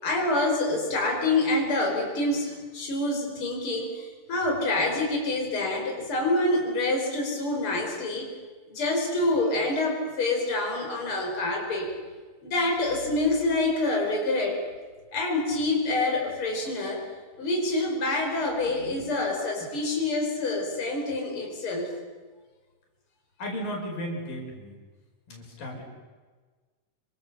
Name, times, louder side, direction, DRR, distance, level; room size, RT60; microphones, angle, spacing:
voice 1, 0.0-8.3 8.7-11.9 12.4-14.6 15.1-17.0 17.4-21.9, left 2 dB, 40° left, 1 dB, 5.8 m, -27 dB
voice 2, 23.4-24.8 25.3-25.8, equal, 85° left, 0 dB, 7.0 m, -35 dB
27.5 x 25.5 x 7.1 m, 1.4 s
omnidirectional pair, 3.9 m